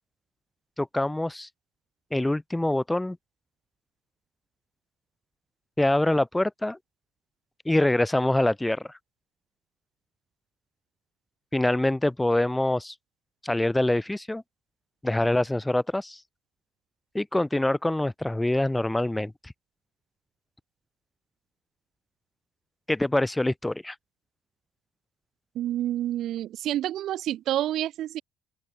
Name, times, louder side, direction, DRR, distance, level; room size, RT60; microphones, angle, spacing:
voice 1, 0.8-1.5 2.1-3.2 5.8-6.8 7.6-8.9 11.5-12.9 13.4-14.4 15.0-16.2 17.1-19.5 22.9-23.9, left 1 dB, 10° left, 1.0 m, -25 dB
voice 2, 25.5-28.2, right 12 dB, 65° right, 0.8 m, -28 dB
cardioid pair, 125°, 0 cm